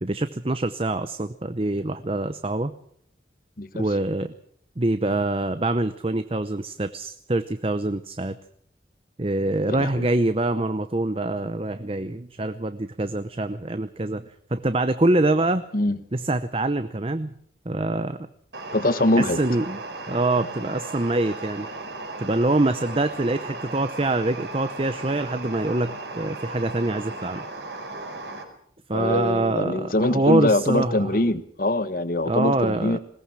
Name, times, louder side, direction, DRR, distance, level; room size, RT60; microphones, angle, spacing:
voice 1, 0.0-2.7 3.7-4.3 4.8-8.4 9.2-14.2 14.5-15.6 16.1-17.3 17.6-18.2 19.2-21.7 22.2-27.4 28.9-31.2 32.2-33.0, right 2 dB, 30° right, 11 dB, 0.8 m, -25 dB
voice 2, 9.7-10.1 15.7-16.0 18.7-19.4 28.9-33.0, left 1 dB, 50° left, 12 dB, 1.4 m, -23 dB
sound 1, 18.5-28.4, right 2 dB, 80° right, 5.0 m, -36 dB
21.0 x 17.5 x 7.5 m, 0.65 s
head